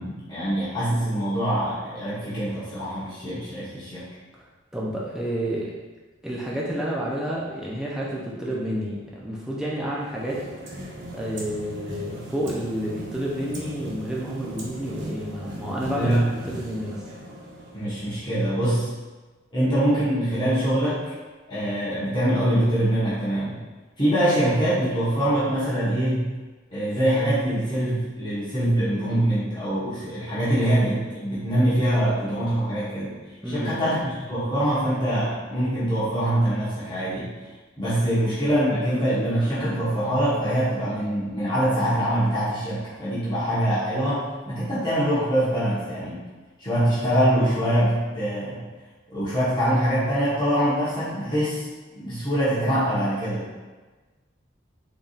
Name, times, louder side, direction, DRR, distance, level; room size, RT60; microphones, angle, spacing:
voice 1, 0.0-4.0 15.9-16.2 17.7-18.9 19.5-21.0 21.5-23.6 24.0-26.3 26.7-33.2 33.4-34.0 34.3-37.3 37.8-46.2 46.6-48.6 49.1-51.7 51.9-53.5, right 1 dB, 25° left, -12 dB, 1.1 m, -24 dB
voice 2, 4.7-5.7 6.2-10.4 11.1-16.1 16.4-17.0 33.4-33.7 38.1-38.2, equal, 5° right, -6 dB, 0.5 m, -30 dB
sound 1, 9.9-18.2, right 1 dB, 65° right, 0.7 m, -38 dB
4.0 x 3.5 x 2.4 m, 1.3 s
head